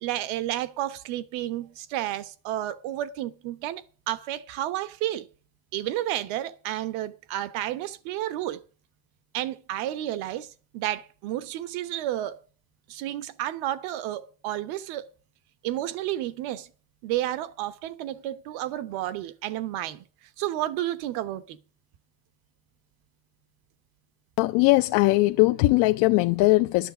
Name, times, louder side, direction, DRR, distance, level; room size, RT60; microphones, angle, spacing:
voice 1, 0.0-5.3 5.7-8.6 9.3-12.4 12.9-15.1 15.6-16.7 17.0-20.0 20.4-21.6, right 13 dB, 65° right, 1.2 m, -31 dB
voice 2, 24.4-26.9, left 20 dB, 55° left, 0.5 m, -20 dB
12.0 x 6.7 x 8.1 m
cardioid pair, 170°, 50 cm